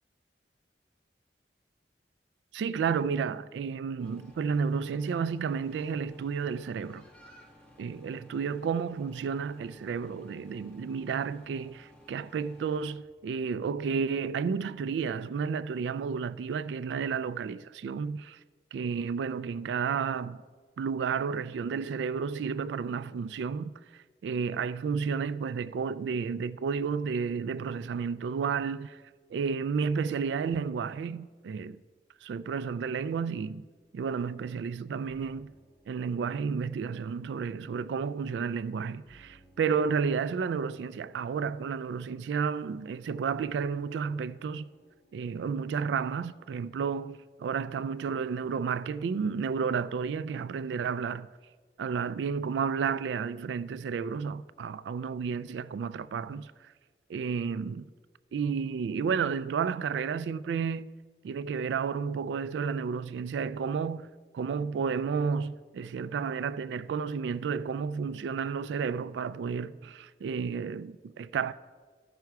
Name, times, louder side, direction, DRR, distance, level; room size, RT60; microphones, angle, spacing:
voice 1, 2.5-7.1 7.8-18.4 18.7-20.4 20.8-29.0 29.3-31.8 32.2-33.7 33.9-35.5 35.9-44.7 45.1-51.3 51.8-56.5 57.1-57.9 58.3-60.9 61.2-64.1 64.3-71.5, right 6 dB, 85° right, 0.3 m, -32 dB
sound 1, 4.0-13.0, left 1 dB, 5° left, 1.3 m, -56 dB
sound 2, 33.8-47.0, left 1 dB, 65° left, 3.3 m, -62 dB
13.5 x 5.8 x 4.6 m
head